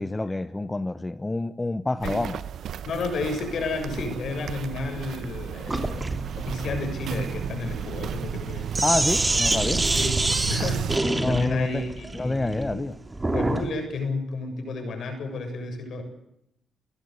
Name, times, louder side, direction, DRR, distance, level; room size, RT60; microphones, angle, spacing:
voice 1, 0.0-2.4 8.8-9.9 11.2-11.8 12.1-13.0, left 2 dB, 20° left, 12 dB, 1.0 m, -27 dB
Walk footsteps, 2.0-11.0, right 9 dB, 75° right, 0.9 m, -33 dB
voice 2, 2.9-8.8 9.9-10.1 10.5-12.8 13.2-16.0, left 3 dB, 70° left, 5 dB, 7.5 m, -32 dB
Sink (filling or washing), 5.7-13.7, right 2 dB, 20° right, 2.7 m, -27 dB
29.5 x 16.0 x 8.2 m, 0.81 s
cardioid pair, 75°, 0 cm